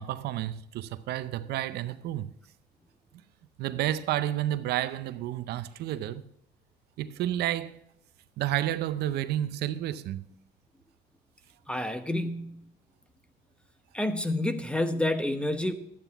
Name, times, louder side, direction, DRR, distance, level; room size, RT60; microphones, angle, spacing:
voice 1, 0.0-2.3 3.6-6.2 7.0-7.8 8.4-10.2, right 12 dB, 75° right, 0.6 m, -30 dB
voice 2, 11.7-12.7 13.9-15.7, left 1 dB, 5° left, 0.9 m, -29 dB
12.0 x 9.0 x 3.5 m
cardioid pair, 110°, 17 cm